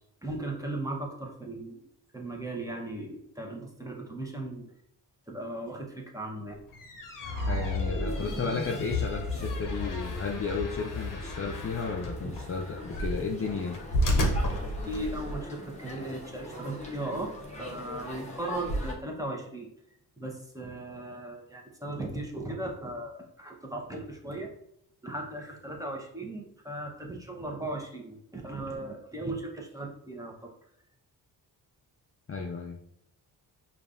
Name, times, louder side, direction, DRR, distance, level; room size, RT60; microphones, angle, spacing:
voice 1, 0.2-1.8 2.1-4.7 5.3-6.6 9.3-9.4 12.2-12.3 14.8-17.3 17.6-19.7 20.2-24.5 25.0-30.3, right 2 dB, 10° right, 0 dB, 0.8 m, -37 dB
sound 1, 6.5-15.4, equal, 50° left, 0.8 m, -34 dB
sound 2, 7.2-13.3, left 3 dB, 45° right, 1.3 m, -35 dB
voice 2, 7.5-13.8 32.3-32.8, left 4 dB, 35° left, 1 dB, 0.4 m, -33 dB
sound 3, 8.1-18.9, equal, 15° left, 1.0 m, -42 dB
5.1 x 2.4 x 2.5 m, 0.74 s
cardioid pair, 80°, 41 cm